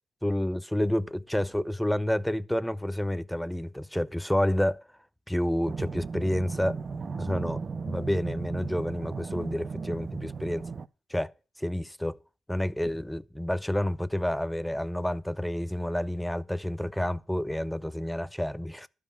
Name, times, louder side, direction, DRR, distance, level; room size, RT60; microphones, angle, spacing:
voice 1, 0.2-4.8 5.3-6.8 7.2-10.7 11.1-11.3 11.6-12.2 12.5-18.9, left 1 dB, 5° left, 0.5 m, -29 dB
sound 1, 5.7-10.9, right 4 dB, 45° right, 0.5 m, -36 dB
12.0 x 5.0 x 8.3 m
cardioid pair, 75°, 0 cm